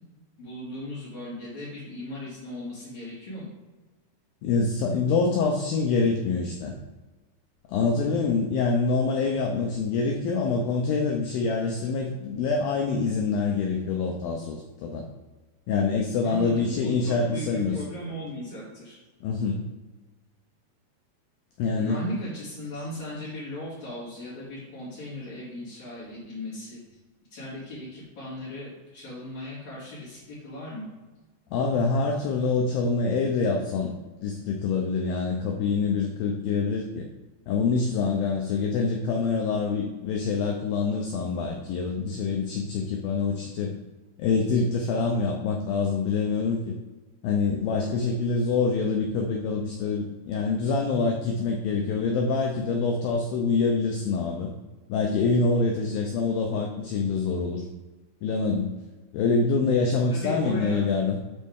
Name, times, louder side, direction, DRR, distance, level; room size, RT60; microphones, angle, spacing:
voice 1, 0.4-3.5 16.2-19.0 21.8-26.8 27.3-30.9 60.1-60.9, equal, 45° left, -11 dB, 3.8 m, -37 dB
voice 2, 4.4-6.7 7.7-15.1 15.7-17.8 19.2-19.6 21.6-22.0 31.5-33.9 34.2-37.1 37.5-43.7 44.2-46.8 47.2-54.5 54.9-57.7 58.2-58.7 59.1-61.2, left 4 dB, 80° left, 2 dB, 2.2 m, -25 dB
12.0 x 4.2 x 3.6 m, 1.2 s
omnidirectional pair, 4.9 m